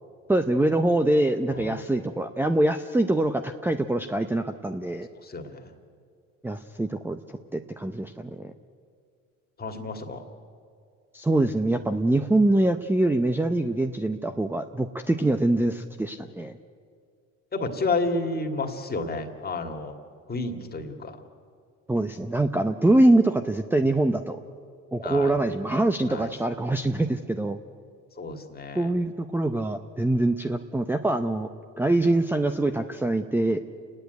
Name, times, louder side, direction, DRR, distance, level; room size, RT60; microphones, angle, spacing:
voice 1, 0.3-5.1 6.4-8.5 11.1-16.5 21.9-24.4 24.9-27.6 28.8-31.5 31.8-33.6, right 1 dB, 5° right, 7 dB, 0.7 m, -24 dB
voice 2, 1.5-1.8 5.1-5.6 9.6-10.2 17.5-19.9 20.3-21.2 25.0-25.4 26.1-26.3 28.2-28.9, left 3 dB, 30° left, 4 dB, 2.3 m, -31 dB
29.0 x 10.0 x 9.4 m, 2.2 s
cardioid pair, 95°, 33 cm